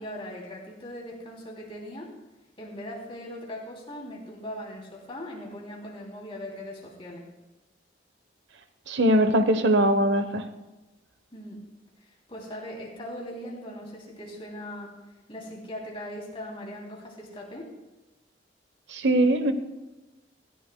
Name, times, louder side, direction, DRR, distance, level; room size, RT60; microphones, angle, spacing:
voice 1, 0.0-2.1 2.6-7.2 11.3-11.6 12.3-14.9 15.3-17.7, left 1 dB, 30° left, -2 dB, 3.0 m, -39 dB
voice 2, 8.9-10.4 18.9-19.5, right 1 dB, 75° right, 9 dB, 1.0 m, -21 dB
19.0 x 14.5 x 2.3 m, 1.1 s
head